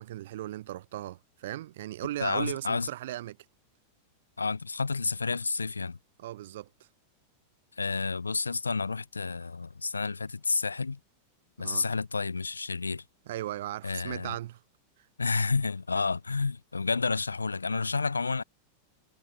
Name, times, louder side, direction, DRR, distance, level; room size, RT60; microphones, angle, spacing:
voice 1, 0.0-3.4 6.2-6.9 11.6-11.8 13.3-14.6 15.0-15.1, right 14 dB, 55° right, 0.6 m, -37 dB
voice 2, 2.2-2.9 4.4-6.0 7.8-11.0 11.6-13.0 13.8-14.3 15.2-18.4, left 4 dB, 75° left, 0.7 m, -30 dB
figure-of-eight pair, 90°, 0 cm